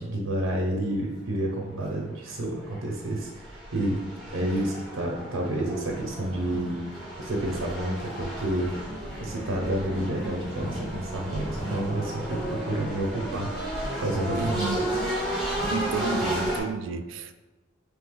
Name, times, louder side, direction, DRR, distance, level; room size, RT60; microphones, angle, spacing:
voice 1, 0.0-4.0 4.3-6.7 7.2-8.7 9.2-14.8, right 1 dB, 80° right, 0.7 m, -30 dB
sound 1, 1.9-2.0 2.5-16.6, equal, 5° left, 1.0 m, -33 dB
voice 2, 14.3-14.8 15.7-17.3, right 5 dB, 60° right, 0.3 m, -31 dB
3.8 x 3.3 x 3.7 m
head